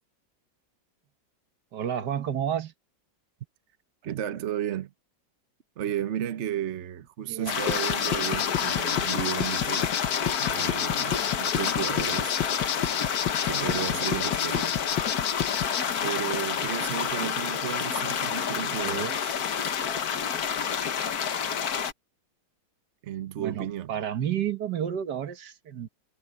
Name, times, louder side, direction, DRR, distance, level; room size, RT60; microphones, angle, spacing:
voice 1, 1.7-2.7 7.2-7.6 18.8-19.2 23.4-25.9, right 9 dB, 65° right, 1.7 m, -31 dB
voice 2, 4.0-4.9 5.8-9.9 10.4-12.4 13.4-14.8 16.0-19.3 23.0-23.9, right 10 dB, 50° right, 0.9 m, -33 dB
sound 1, 7.5-21.9, left 7 dB, 60° left, 1.5 m, -29 dB
sound 2, 7.7-15.8, left 9 dB, 80° left, 1.8 m, -30 dB
omnidirectional pair, 2.0 m